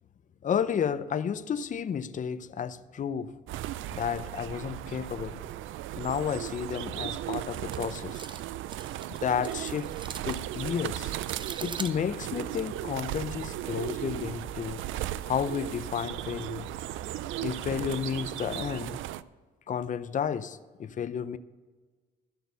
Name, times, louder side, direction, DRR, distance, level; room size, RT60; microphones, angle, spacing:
voice 1, 0.4-3.3 3.9-5.4 6.0-8.2 9.2-9.9 10.2-11.1 11.6-14.8 15.2-16.7 17.4-19.0 19.7-21.4, left 7 dB, 40° left, 0.6 m, -32 dB
sound 1, 3.5-19.2, right 13 dB, 80° right, 0.4 m, -36 dB
sound 2, 7.7-12.7, right 4 dB, 25° right, 0.6 m, -44 dB
13.5 x 6.1 x 6.7 m
cardioid pair, 90°, 20 cm